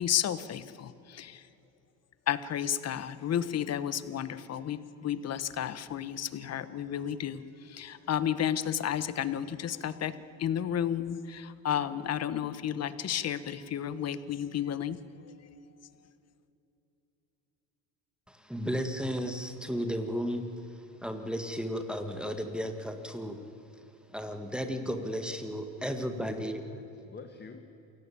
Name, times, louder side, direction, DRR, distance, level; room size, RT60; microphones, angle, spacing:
voice 1, 0.0-1.5 2.3-15.3, left 10 dB, 45° left, 15 dB, 1.3 m, -32 dB
voice 2, 18.3-23.4 24.1-26.6, equal, ahead, 6 dB, 1.9 m, -34 dB
voice 3, 25.8-27.8, left 5 dB, 30° left, 7 dB, 1.6 m, -49 dB
28.5 x 17.0 x 8.7 m, 3.0 s
cardioid pair, 110°, 35 cm